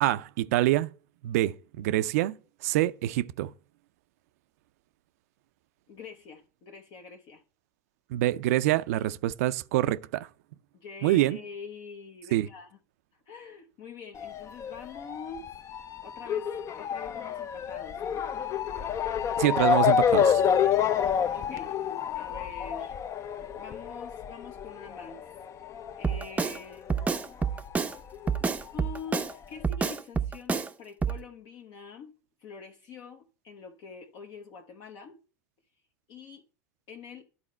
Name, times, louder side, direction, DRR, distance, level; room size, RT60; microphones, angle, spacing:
voice 1, 0.0-0.9 1.2-2.4 2.6-3.5 8.1-10.3 11.0-11.4 12.3-12.5 19.4-20.4, right 15 dB, 70° right, 0.4 m, -26 dB
voice 2, 5.9-7.4 10.7-12.8 13.1-15.5 16.0-18.3 20.9-21.7 22.1-23.0 23.6-25.2 26.0-26.9 28.7-32.1 32.4-35.2 36.1-36.4 36.9-37.2, left 5 dB, 55° left, 1.0 m, -45 dB
Motor vehicle (road) / Siren, 14.2-27.2 27.4-28.6 29.3-29.4 29.6-29.7, left 8 dB, 35° left, 0.5 m, -28 dB
Drum kit, 26.0-26.6 26.9-27.9 28.3-29.3 29.6-30.7 31.0-31.2, right 5 dB, 15° right, 0.5 m, -28 dB
11.0 x 4.2 x 4.2 m
hypercardioid pair, 85°, 9 cm